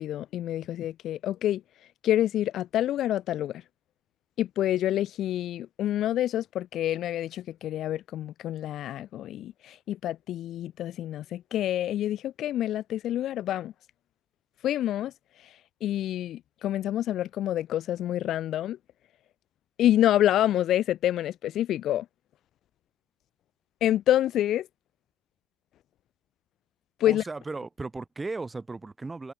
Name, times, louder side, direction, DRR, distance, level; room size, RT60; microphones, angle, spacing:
voice 1, 0.0-1.6 2.0-3.6 4.4-13.7 14.6-15.1 15.4-18.8 19.8-22.1 23.8-24.7 27.0-27.2, left 12 dB, 65° left, 0.3 m, -27 dB
voice 2, 27.0-29.3, right 3 dB, 20° right, 0.4 m, -36 dB
supercardioid pair, 80°, 0 cm